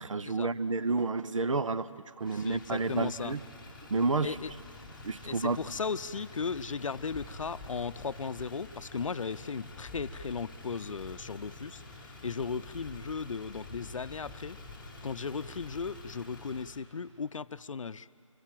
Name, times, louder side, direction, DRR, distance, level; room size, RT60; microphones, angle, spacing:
voice 1, 0.0-3.4 3.9-4.4 5.0-5.6, right 3 dB, 70° right, 13 dB, 0.9 m, -30 dB
Motor vehicle (road), 2.2-16.8, left 2 dB, ahead, 1.2 m, -48 dB
voice 2, 2.4-3.3 4.2-4.5 5.2-14.6 15.0-18.1, left 5 dB, 75° left, 14 dB, 0.7 m, -36 dB
26.0 x 19.5 x 7.6 m, 2.6 s
hypercardioid pair, 175°, 17 cm